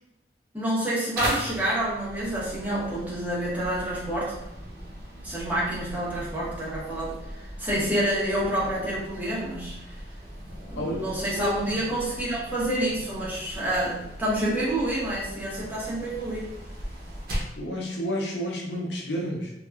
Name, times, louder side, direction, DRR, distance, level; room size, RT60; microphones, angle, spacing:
voice 1, 0.5-4.3 5.2-10.0 10.7-16.5, right 1 dB, 10° right, -8 dB, 0.8 m, -28 dB
sound 1, 1.1-17.6, equal, 55° right, 0.6 m, -38 dB
voice 2, 17.6-19.5, equal, 80° left, -2 dB, 0.6 m, -30 dB
2.8 x 2.3 x 2.3 m, 0.87 s
head